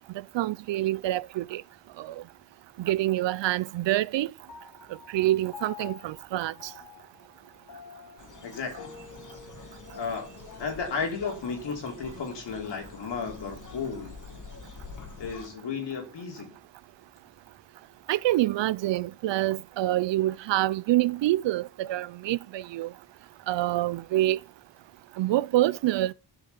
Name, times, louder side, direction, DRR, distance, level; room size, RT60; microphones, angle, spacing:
voice 1, 0.1-1.6 2.0-2.2 2.8-4.3 5.1-6.7 18.1-22.9 23.5-24.4 25.2-26.1, right 15 dB, 90° right, 0.6 m, -26 dB
Piano, 4.5-11.2, left 8 dB, 60° left, 2.7 m, -49 dB
sound 1, 8.2-15.5, left 4 dB, 45° left, 2.2 m, -46 dB
voice 2, 8.4-8.9 9.6-10.3 10.6-14.2 15.2-16.6, left 5 dB, 80° left, 3.2 m, -34 dB
12.0 x 6.0 x 6.9 m
cardioid pair, 80°, 42 cm